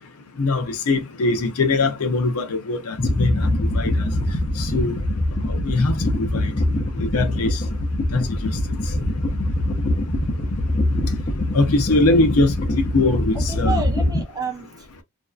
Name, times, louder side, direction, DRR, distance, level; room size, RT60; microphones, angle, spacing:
voice 1, 0.4-3.5 3.7-4.0 4.6-5.0 5.5-6.5 7.0-7.6 8.1-8.6 9.4-9.5 11.5-13.8, left 2 dB, 80° left, 0.6 m, -22 dB
sound 1, 3.0-14.2, left 1 dB, 35° left, 0.6 m, -23 dB
voice 2, 13.3-15.0, right 4 dB, 15° right, 0.5 m, -30 dB
2.6 x 2.3 x 2.3 m
head